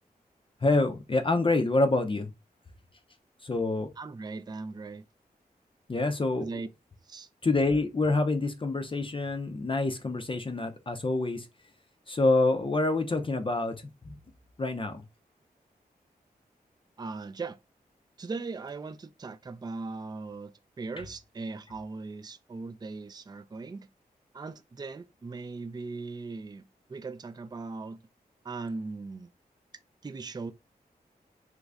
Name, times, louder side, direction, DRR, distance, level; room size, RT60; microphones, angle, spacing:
voice 1, 0.6-2.3 3.4-3.9 5.9-6.5 7.4-11.5 12.1-13.7 14.1-14.2 14.6-15.0, left 2 dB, 30° left, 0.5 m, -26 dB
voice 2, 4.0-5.0 6.4-6.7 7.1-7.3 17.0-17.6 18.2-20.5 20.8-23.9 24.3-28.0 28.4-29.3 30.0-30.5, right 3 dB, 25° right, 0.4 m, -39 dB
3.1 x 2.5 x 3.3 m
cardioid pair, 45°, 17 cm